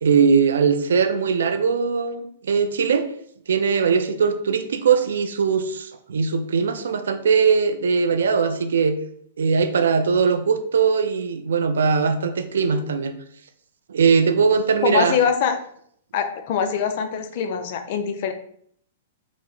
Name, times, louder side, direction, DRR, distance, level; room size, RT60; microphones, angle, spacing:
voice 1, 0.0-3.1 3.5-9.0 9.4-13.2 13.9-15.2, right 5 dB, 90° right, 9 dB, 0.5 m, -20 dB
voice 2, 14.8-15.6 16.1-18.3, left 7 dB, 50° left, 7 dB, 0.5 m, -23 dB
4.8 x 2.1 x 3.9 m, 0.65 s
hypercardioid pair, 150°, 0 cm